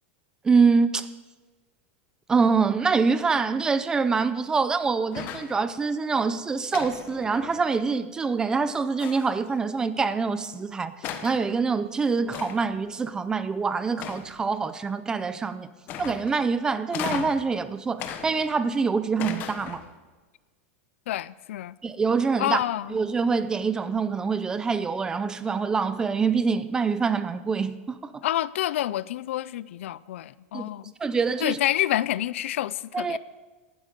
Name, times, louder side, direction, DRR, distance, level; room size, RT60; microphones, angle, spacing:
voice 1, 0.4-1.1 2.3-15.7 16.0-19.8 21.8-22.6 22.9-28.2 30.5-30.6 31.0-31.6 32.9-33.2, right 5 dB, 10° right, 0.5 m, -25 dB
sound 1, 5.1-5.6 6.7-7.8 9.0-9.5 10.4-10.5 11.0-11.5 12.3-12.8 14.0-14.6 15.9-16.4 16.9-17.5 18.0-18.8 19.2-19.9, left 9 dB, 30° left, 1.1 m, -36 dB
voice 2, 21.1-21.8 22.4-23.0 28.2-30.8 31.4-33.2, left 13 dB, 85° left, 0.5 m, -28 dB
18.5 x 12.0 x 5.2 m
supercardioid pair, 170°, 7 cm